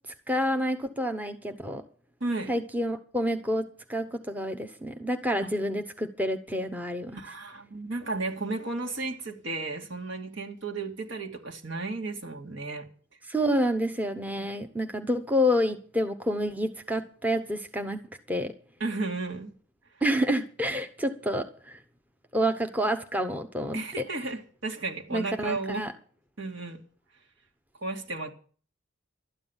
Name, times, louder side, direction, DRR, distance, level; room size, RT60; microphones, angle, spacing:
voice 1, 0.3-1.8 2.5-7.2 13.3-18.0 18.3-18.5 20.0-21.8 22.3-23.8 25.1-25.9, equal, 10° right, 0.8 m, -28 dB
voice 2, 2.2-2.5 5.4-5.5 7.1-12.9 14.4-14.5 18.8-19.5 23.7-25.9 26.4-26.8 27.8-28.3, right 3 dB, 70° right, 2.3 m, -33 dB
12.5 x 9.7 x 7.2 m
head